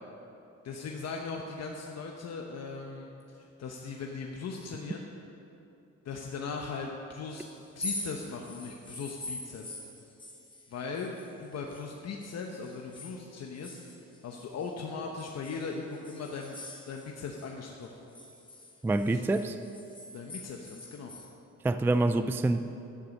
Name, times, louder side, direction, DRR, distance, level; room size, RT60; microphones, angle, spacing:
voice 1, 0.6-3.1 3.4-5.1 6.0-9.7 10.7-11.1 11.4-13.8 14.2-16.6 16.9-18.0 19.1-19.2 20.1-21.1, left 4 dB, 60° left, 1 dB, 1.0 m, -39 dB
sound 1, 7.6-11.9 12.2-14.7 15.2-17.5 17.8-21.3, left 2 dB, 15° left, 1.5 m, -44 dB
voice 2, 18.8-19.6 21.6-22.6, right 2 dB, 10° right, 10 dB, 0.3 m, -26 dB
11.0 x 9.7 x 5.3 m, 2.8 s
cardioid pair, 90°, 30 cm